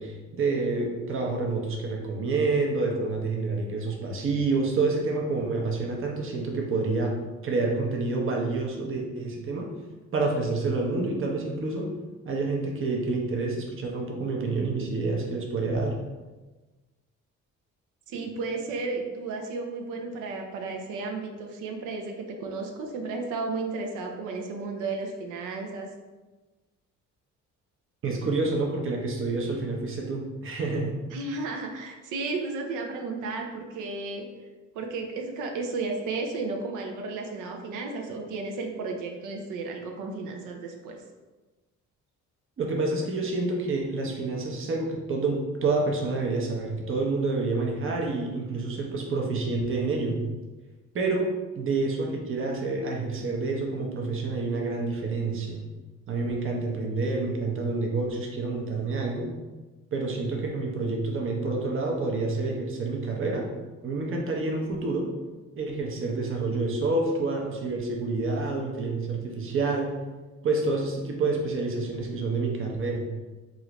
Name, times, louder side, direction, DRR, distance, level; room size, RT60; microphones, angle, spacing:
voice 1, 0.0-7.1 7.4-9.7 10.1-11.9 12.2-15.9 28.0-31.0 42.6-50.2 50.9-51.3 51.6-55.6 56.1-59.3 59.9-63.5 63.8-65.1 65.6-69.9 70.4-73.1, right 3 dB, 45° right, 0 dB, 0.7 m, -28 dB
voice 2, 18.1-25.9 31.1-34.3 34.7-41.0, right 3 dB, 85° right, 2 dB, 0.5 m, -33 dB
3.1 x 2.5 x 2.9 m, 1.2 s
cardioid pair, 90°, 30 cm